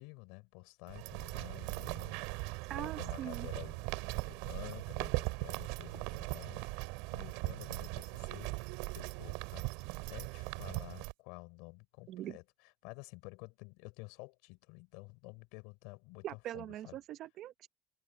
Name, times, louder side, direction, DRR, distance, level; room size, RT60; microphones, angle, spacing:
voice 1, 0.0-8.5 8.9-9.7 10.1-12.4 12.8-17.0, left 28 dB, 85° left, 5.1 m, -51 dB
sound 1, 0.9-11.1, right 26 dB, 85° right, 2.5 m, -39 dB
voice 2, 2.7-3.5 12.1-12.4 16.2-17.7, right 12 dB, 50° right, 0.9 m, -42 dB
cardioid pair, 150°, 0 cm